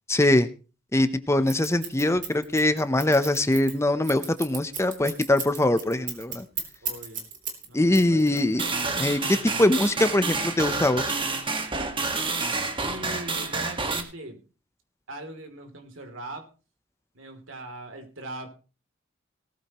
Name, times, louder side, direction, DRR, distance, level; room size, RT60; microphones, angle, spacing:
voice 1, 0.1-0.5 0.9-6.4 7.7-8.7 9.0-11.0, left 1 dB, 15° left, 11 dB, 0.8 m, -22 dB
Scissors, 1.5-7.7 7.9-9.2, right 7 dB, 40° right, 3.4 m, -35 dB
voice 2, 6.8-7.3 7.6-8.6 12.8-14.4 15.1-16.5 17.1-18.5, right 2 dB, 85° right, 5 dB, 3.1 m, -40 dB
sound 1, 8.6-14.0, right 3 dB, 25° right, 1.7 m, -29 dB
18.5 x 14.0 x 3.0 m, 0.34 s
head